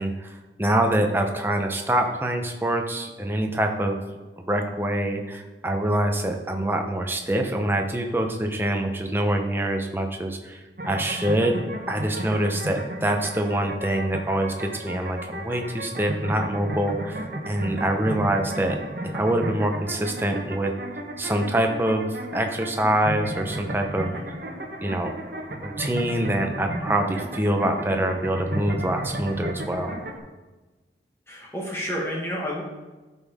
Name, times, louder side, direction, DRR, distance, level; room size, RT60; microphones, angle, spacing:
voice 1, 0.0-4.0 4.5-11.6 11.9-18.8 19.1-20.7 21.2-22.1 22.3-24.1 24.8-25.1 25.5-29.9, right 1 dB, 10° right, 3 dB, 0.8 m, -25 dB
sound 1, 10.8-30.2, right 1 dB, 55° right, 1.0 m, -34 dB
voice 2, 31.3-32.6, equal, 15° left, -3 dB, 1.2 m, -30 dB
12.5 x 5.5 x 3.6 m, 1.2 s
head